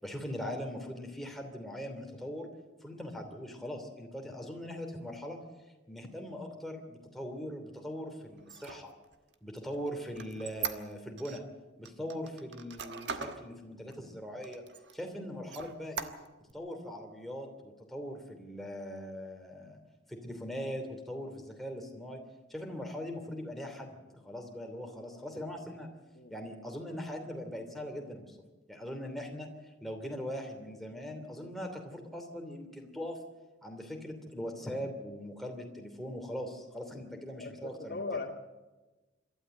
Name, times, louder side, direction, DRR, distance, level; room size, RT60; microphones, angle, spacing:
voice 1, 0.0-2.5 2.8-5.4 5.9-8.9 9.4-11.4 11.8-14.6 14.9-16.1 16.5-19.8 20.1-22.2 22.5-25.9 26.3-28.4 28.7-29.5 29.8-33.2 33.6-38.1, equal, ahead, 2 dB, 2.9 m, -41 dB
Squeak, 8.4-11.4 11.9-13.4 13.9-14.0 14.4-15.1 15.5-16.5, right 6 dB, 70° right, 1.3 m, -40 dB
voice 2, 37.4-38.3, left 3 dB, 55° left, -3 dB, 2.2 m, -39 dB
27.0 x 13.0 x 7.8 m, 1.2 s
head